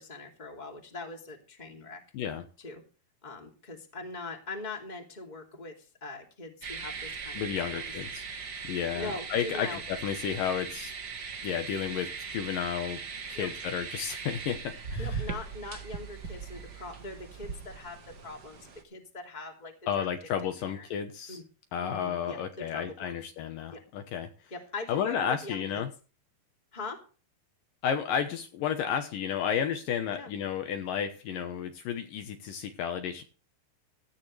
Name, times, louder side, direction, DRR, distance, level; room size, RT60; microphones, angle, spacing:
voice 1, 0.0-2.0 2.6-2.8 3.2-7.9 8.9-9.8 13.3-13.5 15.0-20.1 20.7-20.9 21.3-21.4 21.8-23.2 23.7-23.8 24.5-25.9 26.7-27.0 30.1-30.3, left 3 dB, 15° left, 1 dB, 2.4 m, -42 dB
voice 2, 2.1-2.4 7.4-8.3 8.7-10.9 11.4-13.0 13.3-15.2 19.9-21.4 21.7-24.3 24.9-25.9 27.8-33.2, left 8 dB, 70° left, 6 dB, 2.5 m, -32 dB
sound 1, 6.6-18.8, right 5 dB, 60° right, 1.0 m, -39 dB
16.0 x 13.5 x 3.3 m, 0.37 s
omnidirectional pair, 4.3 m